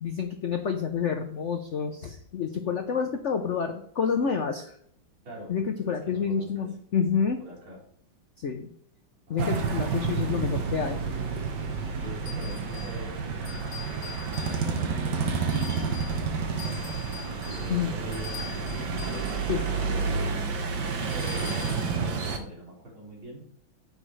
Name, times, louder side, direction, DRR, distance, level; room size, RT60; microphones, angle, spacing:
voice 1, 0.0-4.8 5.5-7.4 8.4-8.7 9.3-11.0 17.7-17.9 19.5-19.6, left 6 dB, 70° left, 6 dB, 0.6 m, -28 dB
voice 2, 5.2-6.7 7.4-7.8 9.3-10.3 12.0-16.9 17.4-23.5, equal, 80° right, -6 dB, 5.0 m, -44 dB
sound 1, 9.4-22.4, right 5 dB, 60° right, 1.6 m, -30 dB
sound 2, 12.3-13.0 13.4-14.9 15.5-16.2 16.6-19.5 21.1-22.0, left 7 dB, 40° left, 4.5 m, -44 dB
10.0 x 8.5 x 3.3 m, 0.67 s
omnidirectional pair, 2.2 m